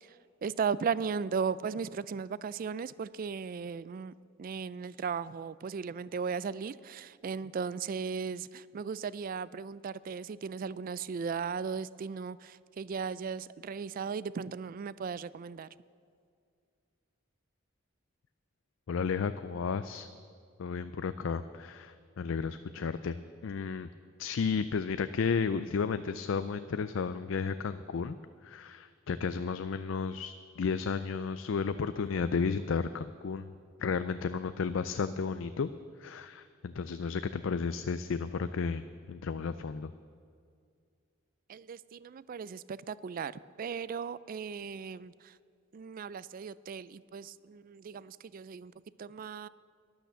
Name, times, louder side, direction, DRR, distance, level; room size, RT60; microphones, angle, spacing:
voice 1, 0.4-4.1 4.4-15.7 41.5-43.3 43.6-45.1 45.7-48.7 49.0-49.5, right 6 dB, 45° right, 19 dB, 0.3 m, -36 dB
voice 2, 18.9-20.1 20.6-23.2 23.4-23.9 24.2-28.2 28.4-33.5 33.8-35.7 36.0-38.8 39.1-39.9, left 5 dB, 65° left, 11 dB, 0.4 m, -33 dB
12.0 x 11.0 x 6.8 m, 2.3 s
head